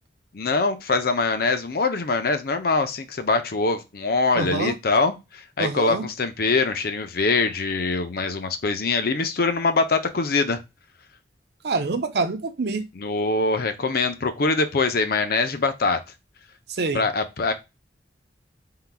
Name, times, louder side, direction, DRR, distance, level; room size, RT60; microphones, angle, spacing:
voice 1, 0.3-10.6 13.0-16.0 16.9-17.5, left 3 dB, 60° left, 0.6 m, -23 dB
voice 2, 4.3-4.7 5.6-6.1 11.6-12.8 16.7-17.0, right 3 dB, 65° right, 0.6 m, -26 dB
4.4 x 3.8 x 2.2 m
head